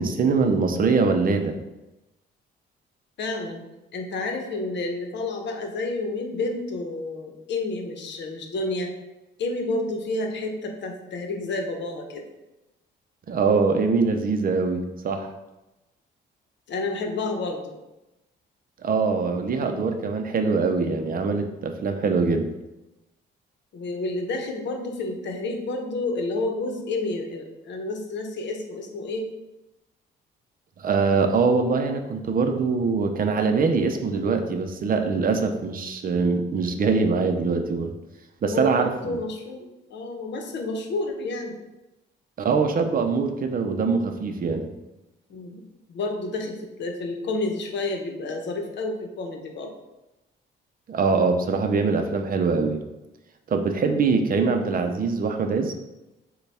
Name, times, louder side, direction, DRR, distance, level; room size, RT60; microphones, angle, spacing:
voice 1, 0.0-1.6 13.3-15.3 18.8-22.5 30.8-37.9 38.4-39.2 42.4-44.8 50.9-52.8 53.5-55.7, right 4 dB, 45° right, 6 dB, 0.6 m, -23 dB
voice 2, 3.2-3.6 3.9-8.9 9.4-12.3 16.7-17.8 23.7-29.3 38.4-41.6 45.3-45.6 45.9-49.7, left 2 dB, 65° left, 3 dB, 0.8 m, -30 dB
6.5 x 2.3 x 3.4 m, 0.97 s
cardioid pair, 90°, 20 cm